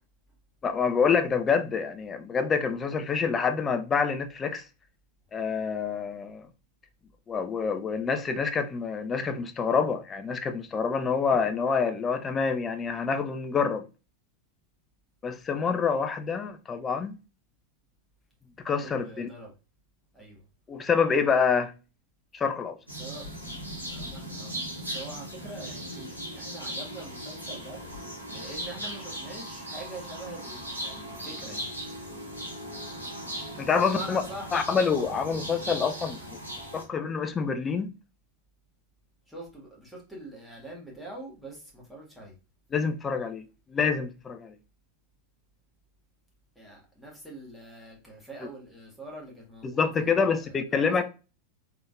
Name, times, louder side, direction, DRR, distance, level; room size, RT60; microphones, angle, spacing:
voice 1, 0.6-4.6 5.3-6.5 7.3-13.8 15.2-17.2 18.6-19.3 20.7-21.7 22.3-22.8 33.6-34.2 34.5-36.4 36.7-37.9 42.7-43.4 43.7-44.6 49.6-51.0, left 5 dB, 20° left, 0.5 m, -27 dB
voice 2, 18.8-19.5 20.1-20.4 23.0-23.4 23.9-27.8 28.3-31.7 33.7-34.6 39.3-42.3 46.5-50.5 50.8-51.0, right 1 dB, ahead, 1.6 m, -44 dB
sound 1, 22.9-36.8, equal, 90° right, 1.3 m, -38 dB
3.8 x 3.4 x 2.4 m
figure-of-eight pair, 90°, 0 cm